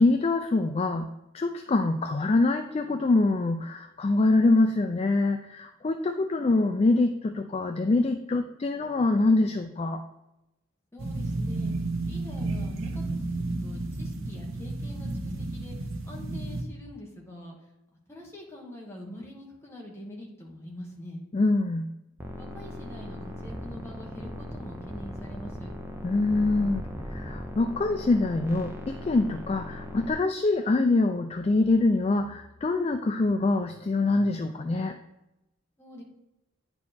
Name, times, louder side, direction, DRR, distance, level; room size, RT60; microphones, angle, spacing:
voice 1, 0.0-10.0 21.3-21.9 26.0-35.0, left 2 dB, 30° left, 7 dB, 0.3 m, -25 dB
voice 2, 10.9-11.7 12.0-17.7 18.1-21.2 22.4-25.7 35.8-36.0, left 1 dB, 10° left, -2 dB, 1.4 m, -44 dB
sound 1, 11.0-16.6, right 2 dB, 75° right, 0.9 m, -32 dB
sound 2, 22.2-30.1, equal, 10° right, 0.7 m, -38 dB
9.6 x 4.5 x 4.2 m, 0.92 s
head